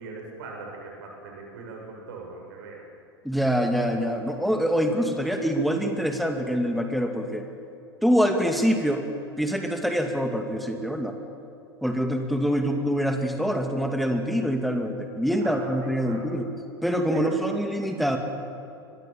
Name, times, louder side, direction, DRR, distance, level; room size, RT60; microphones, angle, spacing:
voice 1, 0.0-2.8 15.4-15.7 16.0-16.3 17.1-17.4, right 4 dB, 60° right, 0 dB, 6.9 m, -40 dB
voice 2, 3.2-7.4 8.0-9.1 9.4-11.1 11.8-16.5 16.8-18.2, equal, ahead, 4 dB, 2.5 m, -25 dB
24.5 x 22.0 x 7.4 m, 2.7 s
figure-of-eight pair, 85°, 13 cm